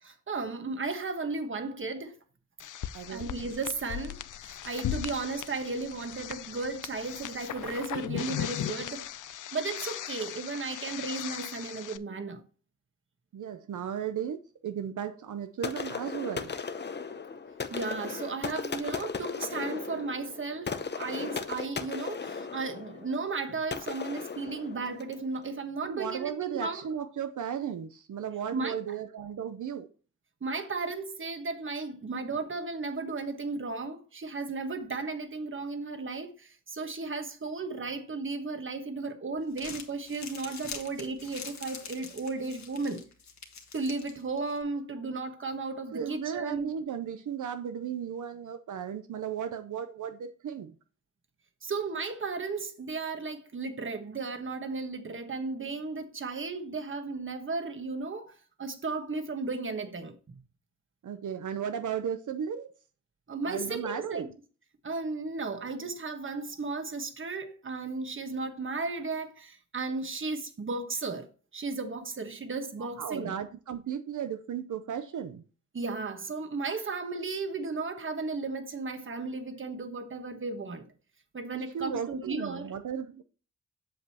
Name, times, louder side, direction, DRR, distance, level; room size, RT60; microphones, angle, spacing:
voice 1, 0.0-2.2 3.1-9.0 9.5-12.4 17.7-26.8 28.5-28.8 30.4-43.0 43.7-46.7 51.6-60.1 63.3-64.3 64.8-71.3 71.5-73.3 75.7-80.8 81.3-82.7, right 3 dB, 40° right, 1.3 m, -35 dB
sound 1, 2.6-12.0, left 11 dB, 85° left, 0.5 m, -38 dB
voice 2, 2.9-3.3 13.3-16.5 25.8-29.9 45.9-50.8 61.0-62.7 63.4-64.3 73.0-75.4 81.5-83.2, right 8 dB, 80° right, 0.7 m, -35 dB
sound 2, 15.6-25.3, left 5 dB, 35° left, 0.7 m, -37 dB
Crumpling crinkling, 39.3-44.6, left 5 dB, 65° left, 1.6 m, -45 dB
7.8 x 7.5 x 2.9 m
wide cardioid pair, 120°, 30 cm